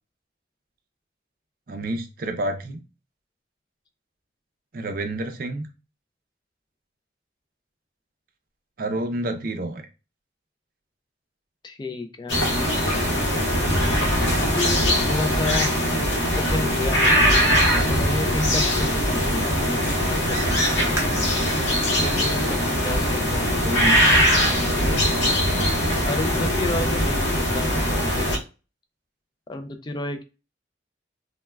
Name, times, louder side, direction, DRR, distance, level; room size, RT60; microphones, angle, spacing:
voice 1, 1.7-2.8 4.7-5.7 8.8-9.8 23.6-24.0 24.8-25.7, right 1 dB, 50° right, 6 dB, 0.4 m, -29 dB
voice 2, 11.6-12.4 14.1-15.7 16.3-17.5 17.9-21.0 22.0-23.5 24.4-25.1 26.0-28.3 29.5-30.2, left 2 dB, 25° left, 7 dB, 0.3 m, -31 dB
sound 1, 12.3-28.4, equal, 70° left, 0.8 m, -21 dB
sound 2, 20.9-24.3 24.9-25.0 25.7-26.0 26.4-26.5, right 2 dB, 15° right, 0.7 m, -39 dB
3.2 x 2.1 x 2.2 m, 0.31 s
head